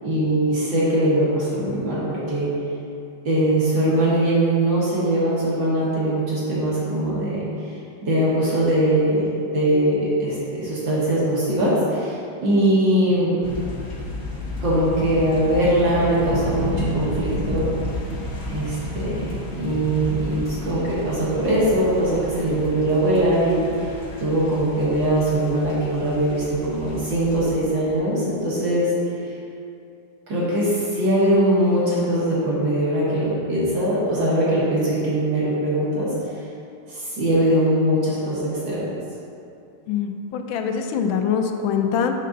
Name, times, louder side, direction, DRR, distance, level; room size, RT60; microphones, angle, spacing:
voice 1, 0.0-2.5 3.3-7.5 8.0-9.3 9.5-13.3 14.6-17.7 18.5-19.3 19.5-23.7 24.2-28.9 30.3-36.1 36.9-38.8, right 1 dB, 65° right, -8 dB, 2.0 m, -21 dB
sound 1, 13.4-27.6, left 2 dB, 50° left, 1.1 m, -32 dB
voice 2, 39.9-42.1, left 7 dB, 75° left, 5 dB, 1.3 m, -23 dB
6.5 x 6.5 x 3.8 m, 2.6 s
omnidirectional pair, 2.3 m